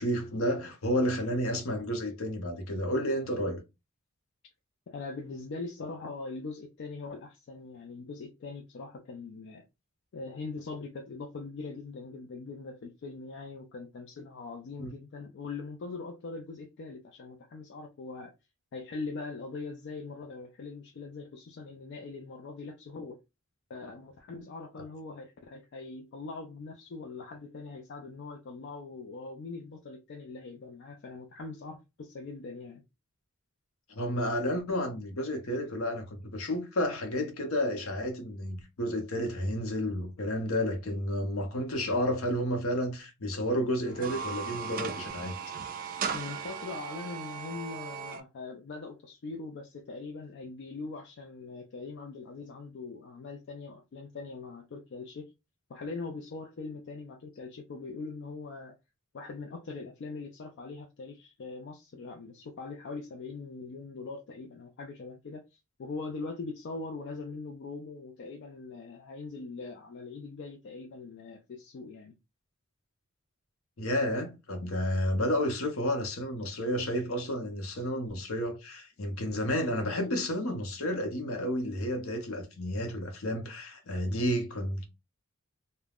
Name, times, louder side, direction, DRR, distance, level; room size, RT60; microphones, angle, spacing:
voice 1, 0.0-3.6 14.8-14.9 24.8-24.9 34.0-45.4 73.8-84.9, equal, 70° left, 0.8 m, -31 dB
voice 2, 4.9-9.6 10.1-18.3 18.7-23.2 23.7-32.8 46.1-55.3 55.7-58.8 59.1-72.2, left 3 dB, 55° left, 0.4 m, -42 dB
sound 1, 43.8-48.2, right 6 dB, 40° right, 0.4 m, -37 dB
2.3 x 2.1 x 3.4 m
head